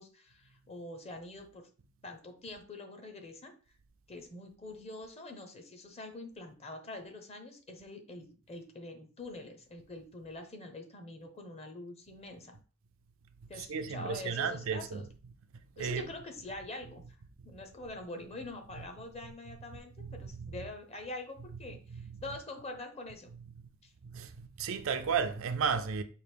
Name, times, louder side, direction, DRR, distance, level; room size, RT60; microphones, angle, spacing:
voice 1, 0.0-1.7 2.0-3.5 4.1-12.6 13.5-15.1 15.8-17.0 17.4-23.3 23.8-23.9, left 2 dB, 30° left, 0.7 m, -45 dB
voice 2, 13.5-15.0 15.8-16.1 18.8-18.9 19.5-19.6 20.0-20.7 21.5-21.6 21.9-22.4 23.3-23.5 24.1-26.0, right 6 dB, 65° right, 0.4 m, -34 dB
4.7 x 2.5 x 3.4 m
head